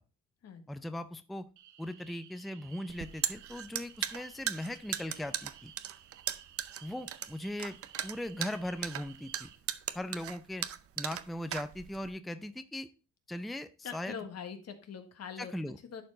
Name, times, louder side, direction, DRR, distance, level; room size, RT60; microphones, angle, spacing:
voice 1, 0.7-1.5 1.8-5.7 6.8-7.8 8.0-9.5 9.9-10.7 11.0-12.9 13.3-14.2 15.4-15.8, left 1 dB, ahead, 11 dB, 0.5 m, -39 dB
sound 1, 1.6-9.6, right 10 dB, 80° right, 0.9 m, -56 dB
sound 2, 2.9-12.1, right 10 dB, 50° right, 0.6 m, -37 dB
voice 2, 13.8-15.5 15.8-16.0, left 7 dB, 55° left, 8 dB, 1.4 m, -43 dB
11.0 x 4.5 x 3.8 m, 0.32 s
cardioid pair, 90°, 30 cm